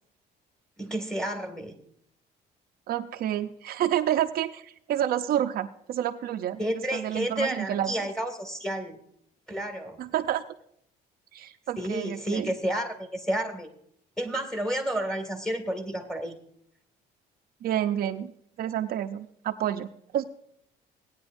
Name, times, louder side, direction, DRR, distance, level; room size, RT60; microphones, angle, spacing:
voice 1, 0.8-1.7 6.6-9.0 9.5-10.0 11.8-13.7 14.2-16.4, right 1 dB, 5° left, 3 dB, 2.0 m, -31 dB
voice 2, 2.9-6.6 6.9-7.9 10.0-10.4 11.3-12.5 17.6-18.3 18.6-19.9 20.1-20.2, right 11 dB, 60° right, 6 dB, 0.7 m, -29 dB
18.0 x 9.7 x 2.6 m, 0.70 s
cardioid pair, 110°, 17 cm